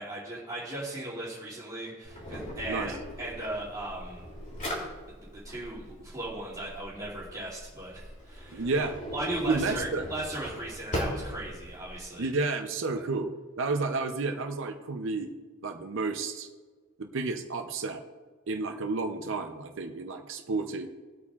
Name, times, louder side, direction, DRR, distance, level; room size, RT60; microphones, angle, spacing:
voice 1, 0.0-4.2 5.4-8.8 9.1-12.3 12.9-13.0, right 1 dB, 15° right, -8 dB, 2.6 m, -37 dB
Drawer open or close, 2.1-12.0, equal, 35° left, 2.9 m, -39 dB
voice 2, 8.5-9.0 9.5-10.1 12.2-15.3 15.6-16.5 17.0-18.0 18.5-20.9, right 3 dB, 60° right, 5 dB, 0.7 m, -31 dB
20.0 x 8.4 x 2.4 m, 1.5 s
head